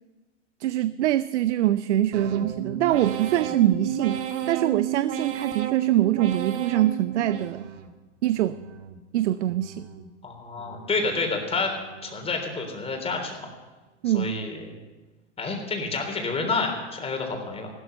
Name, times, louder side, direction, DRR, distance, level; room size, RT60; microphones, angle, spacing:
voice 1, 0.6-4.2 4.5-7.7 8.2-8.6 9.1-9.9 14.0-14.4, right 13 dB, 80° right, 15 dB, 0.6 m, -24 dB
sound 1, 2.1-8.0 8.4-9.0 9.5-10.1 10.6-11.2 11.7-12.3 12.8-13.3, right 10 dB, 45° right, 1.6 m, -33 dB
voice 2, 10.2-11.7 12.0-13.5 14.1-14.7 15.4-17.7, left 3 dB, 15° left, 3 dB, 3.5 m, -29 dB
15.0 x 13.0 x 6.8 m, 1.2 s
hypercardioid pair, 120°, 34 cm